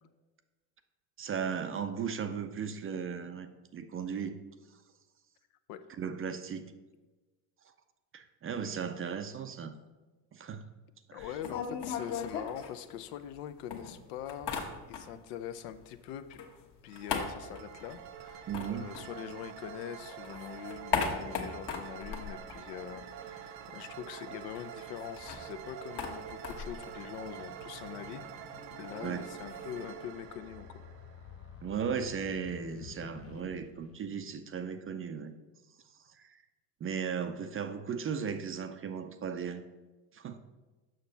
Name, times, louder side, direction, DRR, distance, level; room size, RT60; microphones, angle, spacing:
voice 1, 1.2-4.4 6.0-6.6 8.1-9.8 10.3-10.6 11.1-11.3 18.5-18.9 29.0-29.4 31.6-35.3 36.1-36.4 36.8-39.6 40.1-40.4, right 6 dB, 30° right, 9 dB, 0.4 m, -36 dB
voice 2, 11.1-14.5 14.9-16.4 16.8-28.2 28.8-30.9, left 10 dB, 75° left, 10 dB, 0.7 m, -43 dB
sound 1, 11.2-13.4 13.7-15.3 15.6-19.8 20.1-23.4 23.6-23.7 24.0-29.8, left 5 dB, 55° left, 1.4 m, -39 dB
sound 2, 16.9-31.7, right 9 dB, 90° right, 0.6 m, -46 dB
sound 3, 26.9-34.4, left 7 dB, 30° left, 0.5 m, -52 dB
6.6 x 5.9 x 3.9 m, 1.2 s
hypercardioid pair, 75°, 50 cm